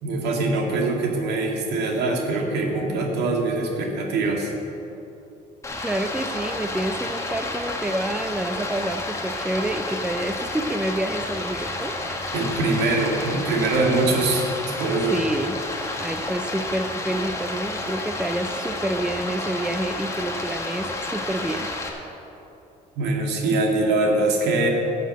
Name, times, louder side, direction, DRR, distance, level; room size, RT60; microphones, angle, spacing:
voice 1, 0.0-4.5 12.3-14.5 14.8-15.2 23.0-24.7, right 2 dB, 80° right, 0 dB, 2.2 m, -23 dB
Stream, 5.6-21.9, left 2 dB, 15° left, 1.8 m, -30 dB
voice 2, 5.8-11.9 15.1-15.6 16.0-21.7, right 1 dB, 5° right, 8 dB, 0.6 m, -28 dB
13.5 x 6.7 x 7.7 m, 2.9 s
cardioid pair, 110°, 17 cm